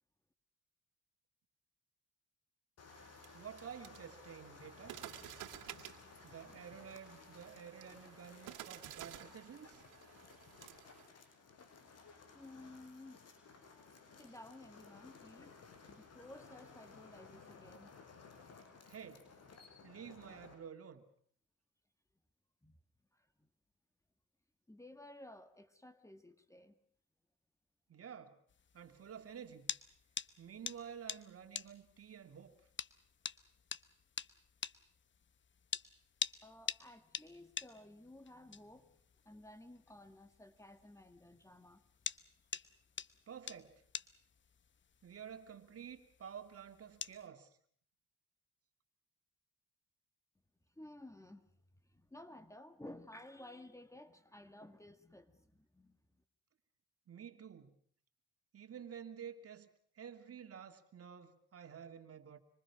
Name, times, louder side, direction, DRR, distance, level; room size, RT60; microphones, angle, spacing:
sound 1, 2.8-20.5, left 4 dB, 55° left, 5.8 m, -58 dB
sound 2, 2.9-11.1, right 12 dB, 85° right, 2.4 m, -53 dB
voice 1, 3.3-5.0 6.2-9.8 18.9-19.2 19.8-21.0 27.9-28.4 28.7-29.7 30.4-32.5 43.3-43.7 45.0-47.5 57.1-57.7 58.5-59.7 59.9-62.4, right 8 dB, 50° right, 7 dB, 2.9 m, -51 dB
voice 2, 12.3-13.3 13.7-13.9 14.2-17.9 22.6-22.8 23.1-23.5 24.7-26.7 36.4-39.0 39.3-41.8 50.8-51.5 51.9-56.2, left 1 dB, 10° left, 10 dB, 2.0 m, -55 dB
sound 3, 28.5-47.3, left 7 dB, 40° left, 1.0 m, -47 dB
26.5 x 25.0 x 6.2 m, 0.62 s
cardioid pair, 90°, 30 cm